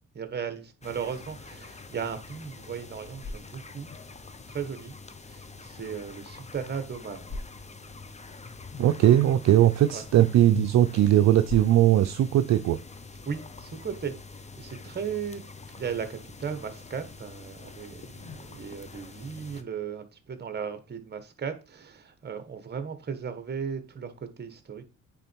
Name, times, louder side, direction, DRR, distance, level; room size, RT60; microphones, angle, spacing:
voice 1, 0.1-3.9 4.5-5.0 5.3-7.3 9.9-10.0 13.2-14.2 14.6-15.4 15.8-24.8, right 7 dB, 35° right, 1.4 m, -36 dB
sound 1, 0.8-19.6, left 4 dB, 20° left, 0.8 m, -44 dB
sound 2, 2.8-13.9, left 2 dB, 45° left, 1.7 m, -47 dB
voice 2, 8.8-12.8, right 12 dB, 60° right, 0.5 m, -20 dB
9.0 x 3.8 x 4.6 m
cardioid pair, 90°, 30 cm